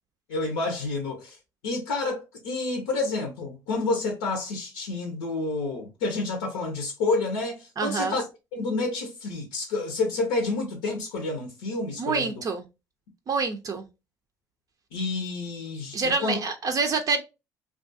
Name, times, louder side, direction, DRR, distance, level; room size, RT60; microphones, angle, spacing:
voice 1, 0.3-1.4 1.6-8.2 8.5-12.3 14.9-16.4, left 3 dB, 85° left, 0.6 m, -29 dB
voice 2, 7.8-8.2 12.0-12.6 13.3-13.8 15.9-17.2, right 4 dB, 45° right, 0.4 m, -26 dB
2.3 x 2.3 x 2.6 m
hypercardioid pair, 55°, 8 cm